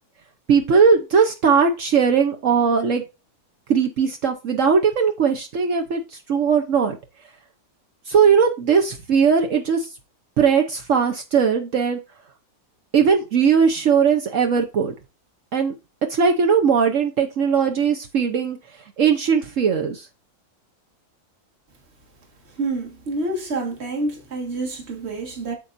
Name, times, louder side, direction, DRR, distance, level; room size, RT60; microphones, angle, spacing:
voice 1, 0.5-3.0 3.7-6.0 6.3-7.0 8.1-9.9 10.4-12.0 12.9-14.9 15.5-15.7 16.1-18.6 19.0-20.1, right 6 dB, 60° right, 1.1 m, -19 dB
voice 2, 22.6-25.6, right 2 dB, 45° right, 2.0 m, -28 dB
8.7 x 6.9 x 2.6 m
omnidirectional pair, 1.6 m